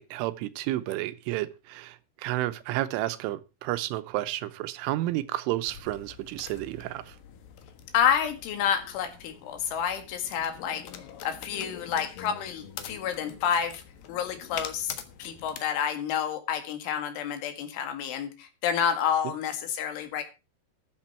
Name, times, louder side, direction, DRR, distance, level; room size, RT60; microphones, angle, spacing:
voice 1, 0.0-7.2, right 16 dB, 85° right, 3.4 m, -31 dB
sound 1, 5.7-15.6, left 9 dB, 65° left, 2.6 m, -44 dB
voice 2, 7.9-10.9 11.2-13.8 14.1-20.2, left 8 dB, 80° left, 4.3 m, -29 dB
13.5 x 11.5 x 4.4 m
omnidirectional pair, 5.5 m